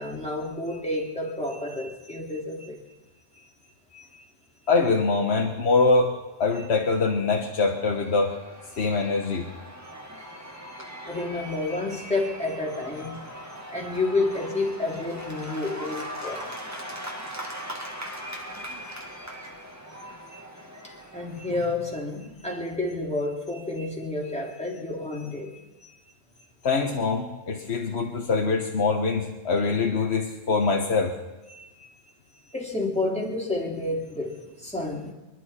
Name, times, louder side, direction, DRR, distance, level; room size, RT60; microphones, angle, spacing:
voice 1, 0.0-2.8 3.4-3.5 3.9-4.1 8.7-8.8 11.1-16.5 20.3-20.4 20.8-25.9 31.5-32.0 32.5-35.1, left 2 dB, 5° left, -2 dB, 2.9 m, -30 dB
voice 2, 4.7-6.1 6.4-8.3 8.8-9.5 26.6-31.1, left 4 dB, 75° left, 1 dB, 1.4 m, -23 dB
Cheering / Applause / Crowd, 7.5-22.2, equal, 15° right, 1.8 m, -40 dB
26.5 x 11.5 x 4.3 m, 1.1 s
omnidirectional pair, 1.1 m